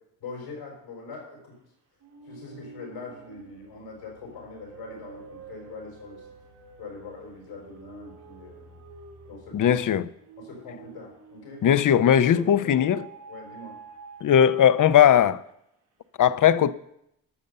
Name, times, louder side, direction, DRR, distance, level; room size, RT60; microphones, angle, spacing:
voice 1, 0.2-1.6 2.3-6.3 6.8-8.8 9.2-9.8 10.4-12.0 12.3-13.8, left 3 dB, 90° left, 4.9 m, -42 dB
sound 1, 2.0-12.2 12.7-15.5, right 5 dB, 85° right, 2.8 m, -48 dB
voice 2, 9.5-10.0 11.6-13.0 14.2-15.4 16.2-16.7, left 9 dB, 50° left, 0.7 m, -19 dB
12.5 x 6.6 x 6.7 m
supercardioid pair, 50°, 41 cm